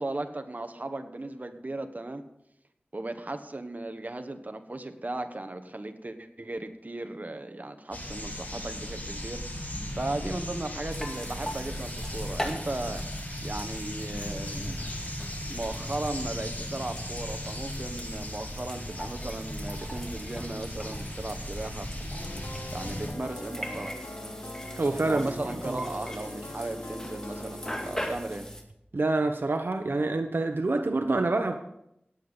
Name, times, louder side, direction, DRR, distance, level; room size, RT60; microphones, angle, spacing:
voice 1, 0.0-2.2 2.9-9.4 10.0-13.1 13.4-14.8 15.5-21.9 22.7-24.0 25.1-28.5, right 2 dB, 50° right, 7 dB, 1.3 m, -36 dB
sound 1, 7.9-23.1, left 1 dB, 50° left, 4.5 m, -37 dB
sound 2, 10.9-28.6, equal, 15° left, 2.2 m, -41 dB
sound 3, 22.2-28.1, left 1 dB, 80° left, 1.8 m, -42 dB
voice 2, 24.8-25.3 25.6-25.8 28.9-31.6, right 2 dB, 75° right, 6 dB, 0.9 m, -26 dB
17.5 x 8.2 x 5.4 m, 0.79 s
wide cardioid pair, 50°, 4 cm